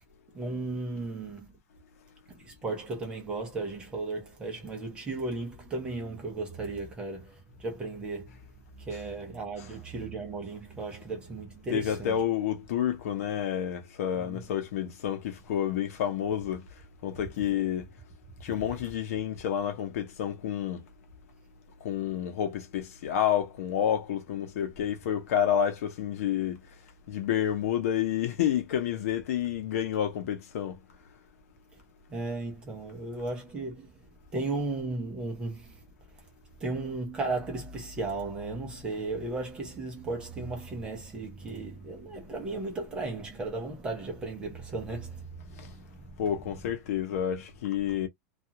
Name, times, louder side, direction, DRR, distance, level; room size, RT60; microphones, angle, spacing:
voice 1, 0.3-1.5 2.3-12.2 14.1-14.4 32.1-34.0 34.3-35.8 36.6-46.2, right 3 dB, 10° right, 0.7 m, -35 dB
voice 2, 11.7-16.6 17.0-17.9 18.4-20.8 21.8-26.6 27.1-30.8 46.2-48.1, left 9 dB, 60° left, 0.8 m, -29 dB
2.4 x 2.3 x 2.8 m
supercardioid pair, 180°, 9 cm